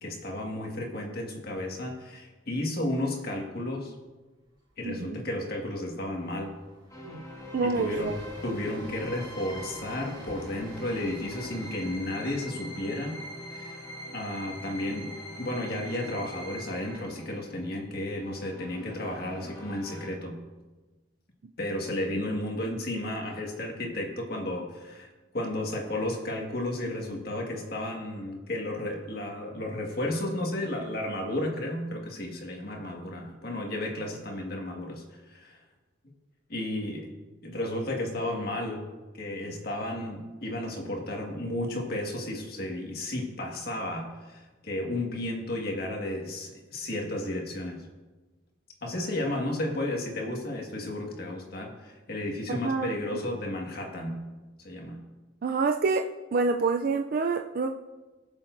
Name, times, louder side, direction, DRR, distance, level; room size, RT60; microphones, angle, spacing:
voice 1, 0.0-3.9 4.8-6.5 7.6-8.1 8.4-13.2 13.5-13.8 14.1-20.4 21.6-25.1 25.3-35.6 36.5-37.1 37.4-38.8 39.1-47.9 48.8-54.2 54.6-55.0, left 1 dB, 55° left, 0 dB, 1.7 m, -33 dB
Train, 4.4-4.7 5.0-5.1 5.5-15.7, right 2 dB, 25° right, 2.8 m, -52 dB
voice 2, 4.8-5.2 7.0-7.2 7.5-8.1 52.5-53.0 55.4-56.0 56.3-57.7, right 4 dB, 50° right, 4 dB, 0.4 m, -27 dB
sound 1, 6.9-20.1, left 1 dB, 20° left, 1.6 m, -43 dB
20.0 x 7.1 x 2.6 m, 1.2 s
head